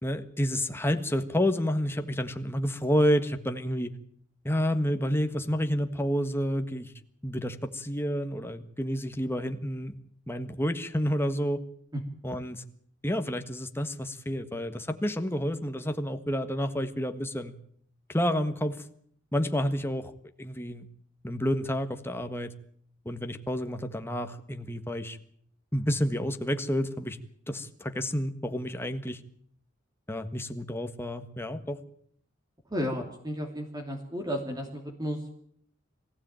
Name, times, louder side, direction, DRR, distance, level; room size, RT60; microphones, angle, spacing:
voice 1, 0.0-3.9 4.4-6.9 7.2-9.9 10.3-11.6 12.2-12.6 13.0-17.5 18.1-18.8 19.3-20.8 21.2-22.5 23.0-25.2 25.7-27.2 27.5-29.2 30.1-31.8, equal, 10° left, 7 dB, 1.5 m, -29 dB
voice 2, 32.7-35.4, equal, 20° right, 2 dB, 2.9 m, -33 dB
23.5 x 15.5 x 9.0 m, 0.64 s
head